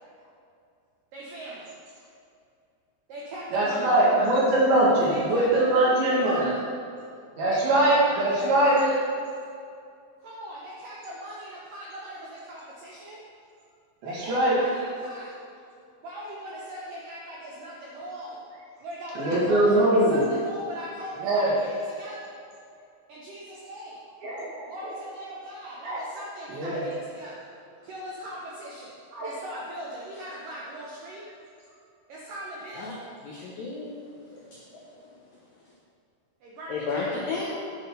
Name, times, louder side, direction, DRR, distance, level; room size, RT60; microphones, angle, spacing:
voice 1, 1.1-1.7 3.1-4.4 5.1-6.6 7.5-8.9 10.2-13.2 14.0-15.3 16.0-18.4 18.8-22.3 23.1-24.0 24.7-27.5 27.8-28.9 29.2-31.2 32.1-33.0 36.4-37.2, right 1 dB, 75° right, -5 dB, 2.0 m, -39 dB
voice 2, 3.5-6.4 7.3-8.8 14.0-14.6 19.2-20.2 21.2-21.5 24.2-24.6 25.8-26.0 26.5-26.8 29.1-29.3, right 1 dB, 60° right, -6 dB, 3.4 m, -22 dB
voice 3, 33.2-34.0 34.3-35.1 36.7-37.6, left 4 dB, 90° left, -4 dB, 1.9 m, -33 dB
10.5 x 6.1 x 5.6 m, 2.4 s
omnidirectional pair, 5.7 m